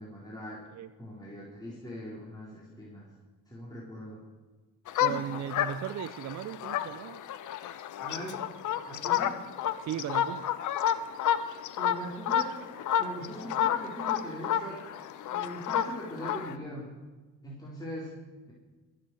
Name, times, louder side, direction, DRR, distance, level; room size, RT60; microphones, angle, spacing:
voice 1, 0.0-0.6 1.0-3.1 3.5-4.2 5.0-5.2 8.0-8.4 8.9-9.4 11.7-12.6 13.0-14.8 15.3-16.9 17.4-18.2 18.5-18.6, equal, 15° left, -6 dB, 4.2 m, -41 dB
sound 1, 4.9-16.5, left 10 dB, 80° left, 1.0 m, -30 dB
voice 2, 5.0-7.2 9.8-10.5, right 11 dB, 65° right, 12 dB, 0.6 m, -36 dB
22.0 x 7.8 x 7.7 m, 1.2 s
cardioid pair, 90°, 30 cm